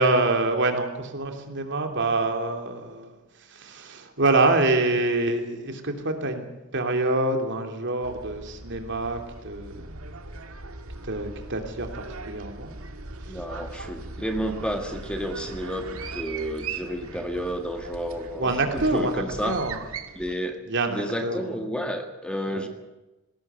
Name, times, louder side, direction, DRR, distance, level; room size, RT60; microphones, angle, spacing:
voice 1, 0.0-3.1 3.5-6.5 6.7-9.9 11.0-12.7 18.4-19.8 20.7-21.5 22.5-22.6, right 2 dB, 55° right, 5 dB, 3.1 m, -26 dB
sound 1, 8.0-20.4, right 3 dB, 75° right, 1.8 m, -39 dB
voice 2, 13.3-19.6 20.1-20.6 20.9-22.7, equal, 5° left, 5 dB, 1.7 m, -31 dB
20.5 x 17.5 x 8.2 m, 1.0 s
head